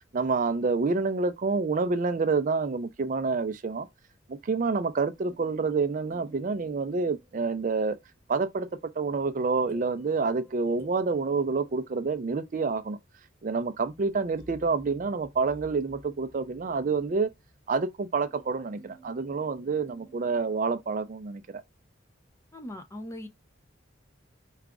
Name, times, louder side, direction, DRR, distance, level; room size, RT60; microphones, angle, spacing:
voice 1, 0.1-3.9 4.3-8.0 8.3-8.7 9.0-13.0 13.4-17.3 17.7-21.6, right 4 dB, 40° right, 0.4 m, -28 dB
mbira C splice markers, 5.2-7.8 9.4-12.4 13.8-21.2, left 1 dB, 15° right, 0.9 m, -54 dB
voice 2, 22.5-23.3, left 1 dB, 15° left, 0.5 m, -39 dB
4.9 x 2.4 x 3.5 m
head